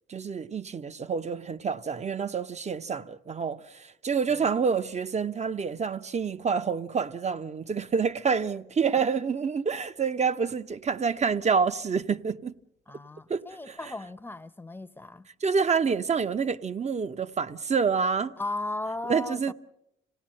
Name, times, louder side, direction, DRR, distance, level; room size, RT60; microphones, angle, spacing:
voice 1, 0.1-12.5 13.3-13.8 15.4-18.3 19.1-19.5, right 5 dB, 35° right, 1.0 m, -28 dB
voice 2, 12.9-15.3 18.4-19.5, left 2 dB, 10° left, 0.9 m, -36 dB
27.0 x 18.0 x 7.8 m
cardioid pair, 90°, 20 cm